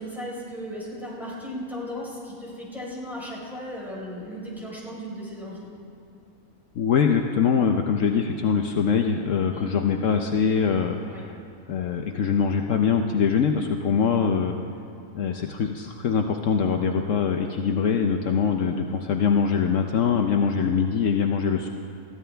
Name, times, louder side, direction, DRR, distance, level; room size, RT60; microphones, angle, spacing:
voice 1, 0.0-5.7 9.5-9.7 11.0-11.2, equal, ahead, -5 dB, 4.3 m, -36 dB
voice 2, 6.7-11.4 11.7-14.5 15.1-21.7, left 6 dB, 70° left, 4 dB, 1.0 m, -23 dB
22.0 x 15.0 x 3.4 m, 2.9 s
omnidirectional pair, 1.4 m